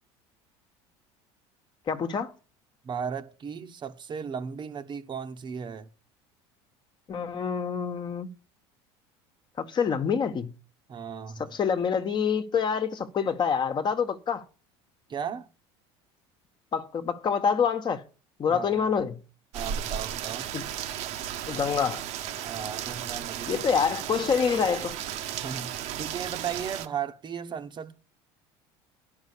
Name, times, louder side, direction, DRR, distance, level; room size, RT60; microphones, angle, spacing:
voice 1, 1.9-2.3 7.1-8.3 9.6-10.5 11.4-14.4 16.7-18.0 18.4-19.2 20.5-20.6 21.5-22.0 23.5-25.0, left 6 dB, 35° left, 1.2 m, -26 dB
voice 2, 2.8-5.9 10.9-11.6 15.1-15.5 18.5-18.9 19.5-20.5 22.4-23.6 25.3-28.0, right 7 dB, 35° right, 1.0 m, -36 dB
Rain, 19.5-26.9, right 10 dB, 60° right, 1.1 m, -35 dB
10.5 x 5.6 x 8.4 m
supercardioid pair, 105°, 13 cm